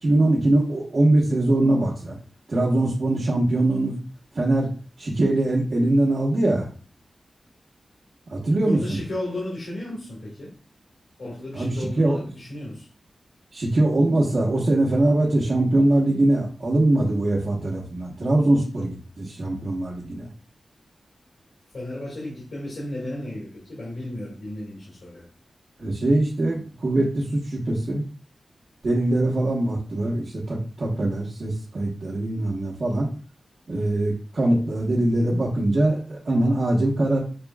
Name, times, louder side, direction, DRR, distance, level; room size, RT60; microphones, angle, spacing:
voice 1, 0.0-2.1 2.5-4.0 4.3-4.7 5.0-6.7 8.3-9.0 11.5-12.2 13.5-20.3 25.8-28.0 28.8-33.1 33.7-37.2, right 1 dB, 60° right, -5 dB, 1.3 m, -22 dB
voice 2, 8.4-10.5 11.2-12.9 21.7-25.2, left 1 dB, 75° left, -6 dB, 1.9 m, -34 dB
6.7 x 3.0 x 2.4 m, 0.39 s
wide cardioid pair, 95°, 0 cm